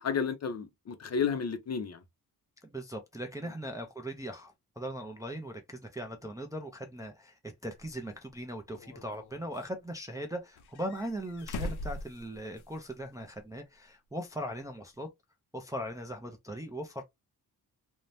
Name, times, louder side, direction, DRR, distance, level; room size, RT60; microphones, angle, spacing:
voice 1, 0.0-2.0, left 6 dB, 45° left, 0.5 m, -32 dB
voice 2, 2.6-15.1 15.5-17.0, right 1 dB, 10° right, 0.3 m, -39 dB
sound 1, 7.8-7.9 8.7-9.7 10.6-12.9 13.2-13.3 14.9-15.0, left 2 dB, 90° left, 0.6 m, -41 dB
2.6 x 2.0 x 3.1 m
wide cardioid pair, 165°, 38 cm